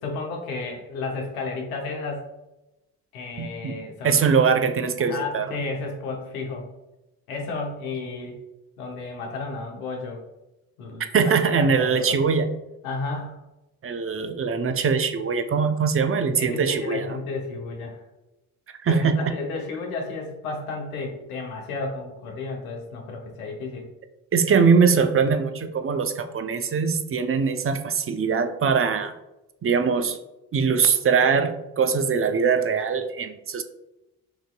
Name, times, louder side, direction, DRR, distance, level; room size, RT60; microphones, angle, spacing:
voice 1, 0.0-2.3 3.1-4.4 5.0-6.7 7.3-8.4 8.8-10.2 10.8-11.0 11.6-12.2 12.8-13.4 16.4-18.0 18.8-23.9, left 3 dB, 90° left, 1 dB, 0.8 m, -32 dB
voice 2, 3.4-5.5 11.1-12.5 13.8-17.1 18.8-19.3 24.3-29.1 29.6-30.2 30.5-33.6, right 5 dB, 30° right, 8 dB, 0.6 m, -22 dB
5.9 x 2.8 x 2.2 m, 0.97 s
hypercardioid pair, 45°, 42 cm